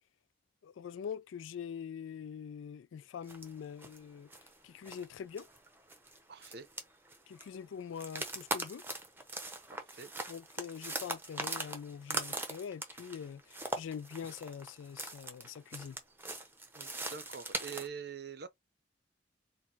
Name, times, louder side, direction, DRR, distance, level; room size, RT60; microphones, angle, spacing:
voice 1, 0.6-4.3 4.6-5.5 7.3-8.8 10.3-16.0, left 7 dB, 80° left, 0.3 m, -44 dB
sound 1, 3.3-3.5 3.8-4.0 4.3-4.6 4.9-5.1 5.4-7.5 7.9-17.9, right 2 dB, 10° right, 0.7 m, -41 dB
voice 2, 6.3-6.7 9.7-10.1 16.7-18.5, right 6 dB, 55° right, 0.6 m, -45 dB
4.1 x 2.2 x 4.3 m
head